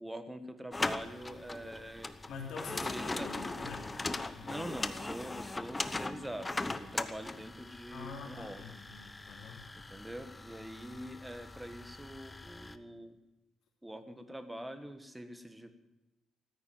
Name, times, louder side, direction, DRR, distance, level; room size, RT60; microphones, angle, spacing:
voice 1, 0.0-2.1 2.8-3.3 4.4-8.7 9.9-13.2 13.8-15.7, right 1 dB, 10° right, 9 dB, 1.6 m, -44 dB
sound 1, 0.7-12.8, left 2 dB, 20° left, 0.9 m, -40 dB
voice 2, 2.3-4.0 4.3-4.7 7.9-9.7, left 5 dB, 75° left, 0 dB, 3.3 m, -45 dB
13.5 x 9.9 x 9.2 m, 0.98 s
cardioid pair, 90°, 0 cm